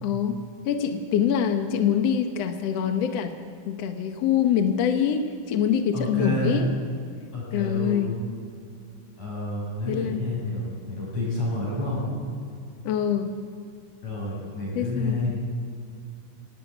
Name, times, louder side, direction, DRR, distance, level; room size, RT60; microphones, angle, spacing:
voice 1, 0.0-0.4 0.6-3.3 3.7-6.7 7.5-8.2 9.9-10.3 12.8-13.3 14.7-15.3, left 8 dB, 70° left, 6 dB, 1.5 m, -25 dB
voice 2, 5.9-6.6 7.3-8.2 9.2-12.1 14.0-15.4, left 1 dB, 45° left, -5 dB, 8.8 m, -29 dB
18.0 x 17.0 x 9.3 m, 2.3 s
omnidirectional pair, 4.3 m